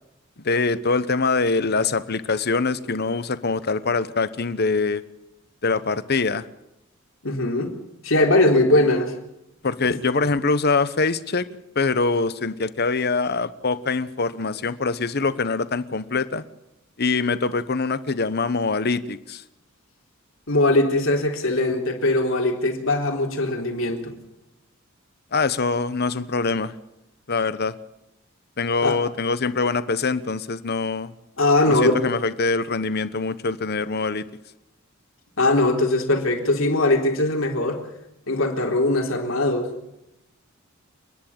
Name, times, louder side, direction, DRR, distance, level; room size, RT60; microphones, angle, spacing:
voice 1, 0.4-5.0 5.6-6.4 9.6-11.5 11.7-16.4 17.0-19.4 25.3-26.7 27.3-27.8 28.6-31.1 31.7-34.2, left 4 dB, 50° left, 14 dB, 1.1 m, -24 dB
voice 2, 7.2-7.8 8.0-9.1 20.5-24.1 28.8-29.0 31.4-32.0 35.4-37.8 38.3-39.7, left 2 dB, 75° left, 2 dB, 3.9 m, -20 dB
30.0 x 10.5 x 8.8 m, 0.88 s
head